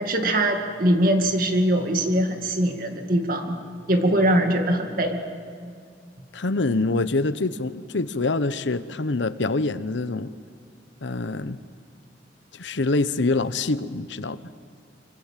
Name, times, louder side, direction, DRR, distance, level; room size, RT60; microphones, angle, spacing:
voice 1, 0.0-3.6 3.9-5.2, right 1 dB, 50° right, 4 dB, 2.3 m, -22 dB
voice 2, 6.3-10.3 11.0-11.6 12.5-14.4, left 3 dB, 90° left, 14 dB, 0.9 m, -25 dB
25.0 x 25.0 x 7.5 m, 2.2 s
head